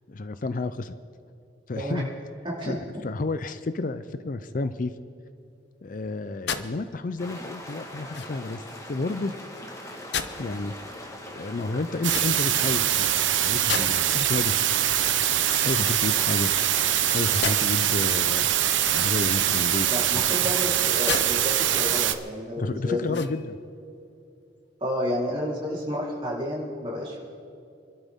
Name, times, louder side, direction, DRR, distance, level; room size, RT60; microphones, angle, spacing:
voice 1, 0.1-0.9 1.7-2.1 2.6-4.9 5.8-9.3 10.4-10.7 11.3-14.7 15.6-18.5 18.9-19.9 20.1-20.5 22.6-23.6, left 2 dB, 45° left, 12 dB, 0.5 m, -31 dB
sound 1, 6.5-6.7 8.1-8.5 10.1-10.4 12.0-12.6 13.7-14.2 15.4-16.2 17.4-17.6 18.9-19.4 21.1-21.3 21.8-21.9 23.0-23.6, left 6 dB, 65° left, 0.8 m, -33 dB
sound 2, 7.2-22.2, left 1 dB, 15° left, 1.6 m, -41 dB
sound 3, 12.0-22.1, right 11 dB, 90° right, 0.7 m, -23 dB
voice 2, 19.9-23.2 24.8-27.2, left 1 dB, 30° right, -5 dB, 3.9 m, -30 dB
27.5 x 12.5 x 3.7 m, 2.6 s
head